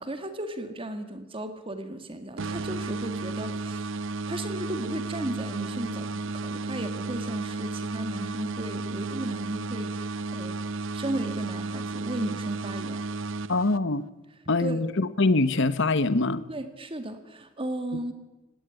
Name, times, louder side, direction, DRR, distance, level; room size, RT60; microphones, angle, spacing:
voice 1, 0.0-4.0 4.3-10.6 10.9-13.0 14.6-14.8 16.5-18.1, right 1 dB, 25° right, 8 dB, 1.9 m, -35 dB
sound 1, 2.4-14.1, right 3 dB, 70° right, 0.6 m, -33 dB
voice 2, 13.5-14.0 14.5-16.5, left 3 dB, 65° left, 14 dB, 1.1 m, -24 dB
18.5 x 17.0 x 9.7 m, 1.1 s
head